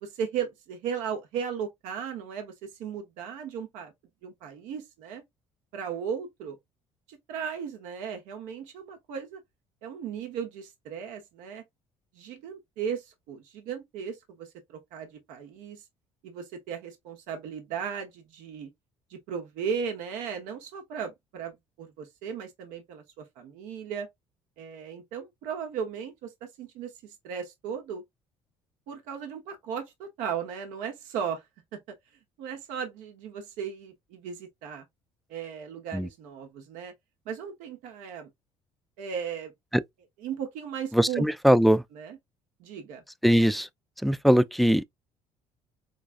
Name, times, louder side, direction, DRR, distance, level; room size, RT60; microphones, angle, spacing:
voice 1, 0.0-3.9 4.2-5.2 5.7-6.6 7.1-9.4 9.8-11.6 12.1-15.8 16.2-18.7 19.1-24.1 24.6-28.0 28.9-31.4 31.7-31.8 32.4-34.8 35.3-36.9 37.3-38.3 39.0-39.5 40.2-41.2 41.9-42.2 42.6-43.0, right 7 dB, 75° right, 1.0 m, -36 dB
voice 2, 40.9-41.8 43.2-43.7 44.0-44.9, equal, ahead, 0.3 m, -21 dB
4.8 x 2.2 x 2.5 m
hypercardioid pair, 70°, 13 cm